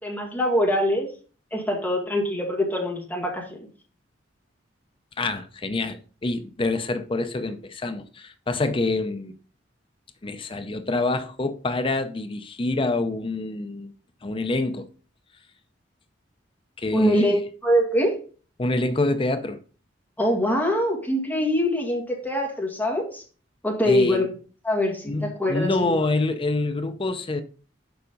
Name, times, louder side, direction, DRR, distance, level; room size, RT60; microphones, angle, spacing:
voice 1, 0.0-1.1 1.5-3.6 16.9-18.2 20.2-23.2 23.6-24.3 24.6-26.0, equal, 10° left, 2.1 m, -23 dB
voice 2, 5.2-9.3 10.2-13.9 14.2-14.9 16.8-17.4 18.6-19.6 23.9-24.2 25.1-27.4, left 2 dB, 25° left, 0.5 m, -26 dB
6.9 x 5.0 x 5.2 m
head